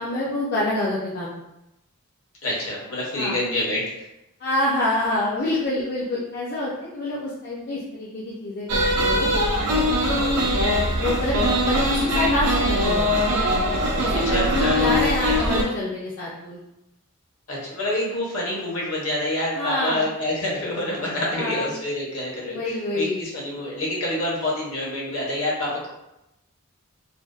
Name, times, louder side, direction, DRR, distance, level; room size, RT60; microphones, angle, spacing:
voice 1, 0.0-1.3 3.2-3.4 4.4-9.3 9.7-9.9 11.0-13.1 14.0-16.6 19.5-20.0 21.3-21.7 22.5-23.2, left 1 dB, 50° left, -7 dB, 0.4 m, -26 dB
voice 2, 2.4-3.8 14.1-14.8 17.5-22.6 22.9-25.9, left 1 dB, 65° left, -4 dB, 0.8 m, -27 dB
sound 1, 8.7-15.6, equal, 85° right, 0.5 m, -21 dB
2.6 x 2.0 x 2.3 m, 0.90 s
head